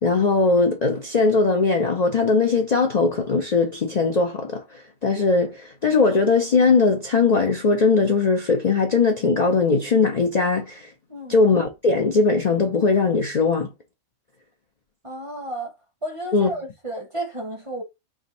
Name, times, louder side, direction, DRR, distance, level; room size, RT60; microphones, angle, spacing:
voice 1, 0.0-10.9 11.3-13.7 16.3-16.5, left 4 dB, 75° left, 0.3 m, -20 dB
voice 2, 15.0-15.7 16.0-17.8, right 1 dB, 30° right, 0.6 m, -32 dB
3.6 x 2.5 x 4.0 m
omnidirectional pair, 1.5 m